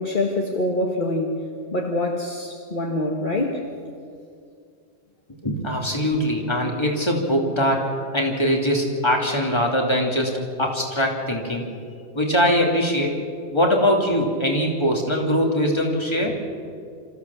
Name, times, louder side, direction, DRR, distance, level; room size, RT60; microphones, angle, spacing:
voice 1, 0.0-1.4 1.7-3.6, left 1 dB, 45° left, 0 dB, 1.8 m, -25 dB
voice 2, 5.4-11.6 12.1-13.2 13.5-16.4, equal, 25° left, 0 dB, 2.9 m, -22 dB
27.0 x 14.5 x 7.2 m, 2.3 s
omnidirectional pair, 1.2 m